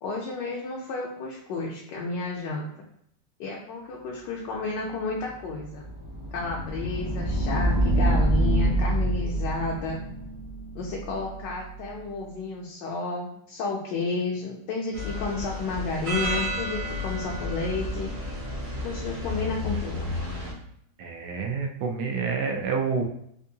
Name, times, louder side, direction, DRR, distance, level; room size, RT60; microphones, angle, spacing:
voice 1, 0.0-2.7 3.4-5.9 6.3-10.0 10.7-18.1 18.8-20.1, left 3 dB, 75° left, -2 dB, 1.2 m, -31 dB
sound 1, 5.1-12.0, right 1 dB, 50° left, 0.3 m, -27 dB
sound 2, 14.9-20.5, left 2 dB, 45° right, 0.8 m, -32 dB
voice 2, 21.0-23.0, right 5 dB, 75° right, 2 dB, 1.1 m, -28 dB
3.6 x 2.5 x 2.7 m, 0.71 s
omnidirectional pair, 2.0 m